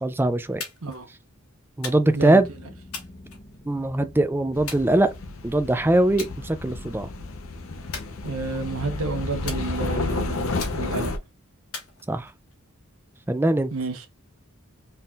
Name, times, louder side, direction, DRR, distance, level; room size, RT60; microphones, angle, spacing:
voice 1, 0.0-0.6 1.8-2.5 3.7-5.1 5.4-7.1 12.1-12.3 13.3-13.7, right 1 dB, 10° right, 0.4 m, -21 dB
sound 1, 0.6-1.0 1.8-2.3 2.9-3.9 4.7-5.5 6.2-6.4 6.8-7.1 7.9-8.7 9.5-10.1 10.6-11.1 11.7-12.5, left 5 dB, 90° left, 1.9 m, -39 dB
sound 2, 2.4-9.9, left 1 dB, 30° left, 0.9 m, -46 dB
sound 3, 4.5-11.2, left 3 dB, 65° left, 0.6 m, -31 dB
voice 2, 8.2-11.1 13.7-14.1, right 3 dB, 75° right, 1.0 m, -30 dB
4.2 x 3.6 x 2.4 m
head